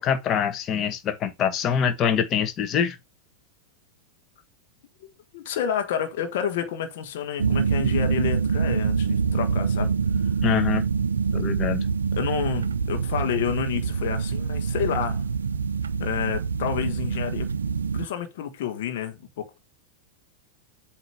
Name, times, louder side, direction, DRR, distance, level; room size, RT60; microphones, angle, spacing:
voice 1, 0.0-3.0 10.4-10.8 11.3-11.8, left 8 dB, 30° left, 1.1 m, -24 dB
voice 2, 5.0-9.9 12.2-15.2 16.0-17.5 17.9-19.6, left 8 dB, 55° left, 1.2 m, -29 dB
sound 1, 7.4-18.1, right 5 dB, 70° right, 0.4 m, -25 dB
8.0 x 3.0 x 4.8 m
figure-of-eight pair, 90°, 0 cm